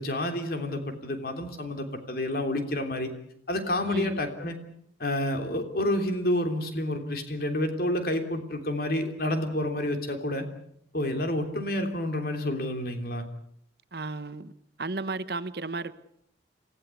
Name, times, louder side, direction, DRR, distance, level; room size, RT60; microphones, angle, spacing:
voice 1, 0.0-3.1 3.5-4.6 5.0-10.4 10.9-13.3, left 1 dB, 50° left, 3.2 m, -29 dB
voice 2, 3.9-4.2 13.9-14.5 14.8-15.9, right 3 dB, 55° right, 1.0 m, -33 dB
27.5 x 15.5 x 8.4 m
head